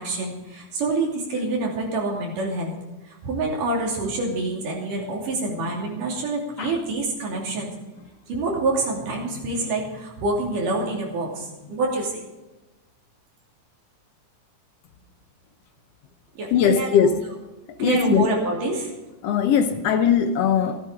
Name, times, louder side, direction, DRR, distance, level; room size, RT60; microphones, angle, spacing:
voice 1, 0.0-2.7 3.1-7.7 8.3-12.2 16.4-17.3 17.8-18.9, right 2 dB, 85° right, 4.5 m, -26 dB
voice 2, 16.5-17.2 17.8-18.3 19.2-20.8, left 8 dB, 70° left, 1.6 m, -20 dB
14.5 x 13.0 x 4.9 m
omnidirectional pair, 3.6 m